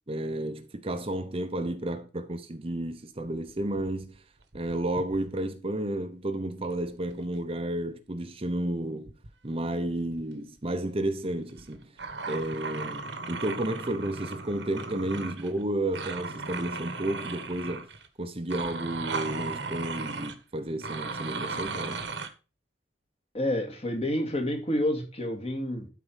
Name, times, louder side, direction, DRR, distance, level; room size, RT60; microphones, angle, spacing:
voice 1, 0.1-4.2 4.5-9.2 9.4-11.9 12.3-17.9 18.2-22.0, right 1 dB, 30° right, 0.8 m, -32 dB
sound 1, 3.2-4.1 4.4-5.4 6.8-7.3 9.1-9.3 9.9-10.2 10.6-10.7 11.6-15.6 15.9-18.1 18.5-20.3 20.8-22.3, right 4 dB, 75° right, 1.3 m, -36 dB
voice 2, 23.3-25.9, left 1 dB, 35° left, 2.4 m, -29 dB
12.5 x 4.6 x 5.6 m
head